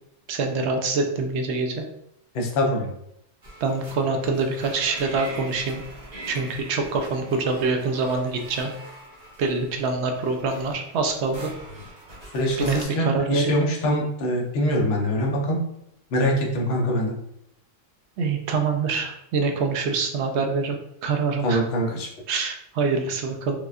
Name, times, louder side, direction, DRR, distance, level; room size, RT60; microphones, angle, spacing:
voice 1, 0.3-1.8 3.6-5.8 6.3-8.7 9.4-11.5 12.6-13.6 18.2-20.8 21.0-21.6 22.3-23.6, right 4 dB, 65° right, 3 dB, 0.8 m, -25 dB
voice 2, 2.3-2.9 12.3-15.6 16.1-17.1 21.4-22.1, equal, 55° left, -1 dB, 0.9 m, -24 dB
sound 1, 3.4-12.8, right 1 dB, 35° right, 1.0 m, -42 dB
4.8 x 2.2 x 2.4 m, 0.77 s
omnidirectional pair, 1.4 m